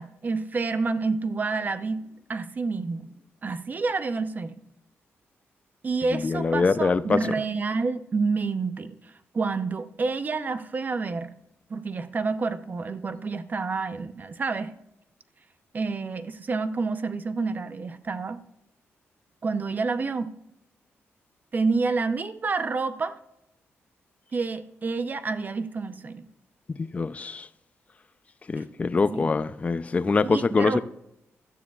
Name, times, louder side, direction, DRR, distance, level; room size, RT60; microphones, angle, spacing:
voice 1, 0.0-2.0 2.3-3.1 3.4-4.6 5.8-11.3 11.7-14.7 15.7-18.4 19.4-20.3 21.5-23.2 24.3-26.3 28.6-28.7 29.1-29.3 30.2-30.8, right 4 dB, 35° right, 0.7 m, -28 dB
voice 2, 6.1-7.3 26.7-27.5 28.5-30.8, left 4 dB, 30° left, 0.4 m, -24 dB
16.5 x 12.0 x 2.4 m
cardioid pair, 105°, 5 cm